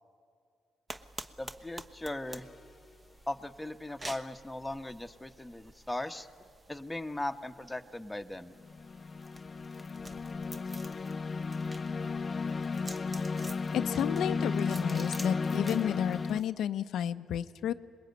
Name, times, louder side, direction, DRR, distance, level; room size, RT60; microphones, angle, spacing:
sound 1, 0.9-16.5, right 2 dB, 20° right, 1.2 m, -50 dB
voice 1, 1.4-2.5 3.3-6.3 6.7-8.5, left 1 dB, 10° left, 5 dB, 1.1 m, -38 dB
sound 2, 2.3-2.7 8.6-16.4, left 4 dB, 35° left, 0.6 m, -34 dB
voice 2, 13.7-17.7, left 10 dB, 75° left, 10 dB, 0.6 m, -32 dB
25.5 x 21.0 x 9.4 m, 2.2 s
cardioid pair, 90°, 0 cm